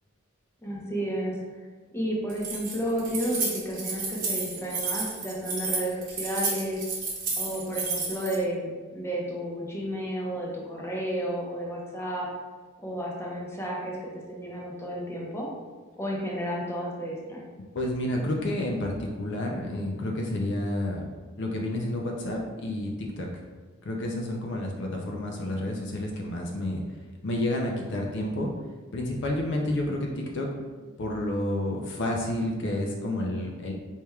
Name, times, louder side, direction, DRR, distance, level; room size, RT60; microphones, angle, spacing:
voice 1, 0.6-1.3 1.9-6.8 7.4-12.3 12.8-15.5 16.0-17.4, equal, 15° left, -4 dB, 0.7 m, -32 dB
Keys jangling, 2.3-8.4, right 4 dB, 40° right, 0.9 m, -31 dB
voice 2, 17.7-21.0 21.4-23.3 23.8-26.8 27.2-28.5 28.9-30.5 30.8-33.7, left 1 dB, 55° left, 0 dB, 0.5 m, -30 dB
4.4 x 3.3 x 2.3 m, 1.4 s
head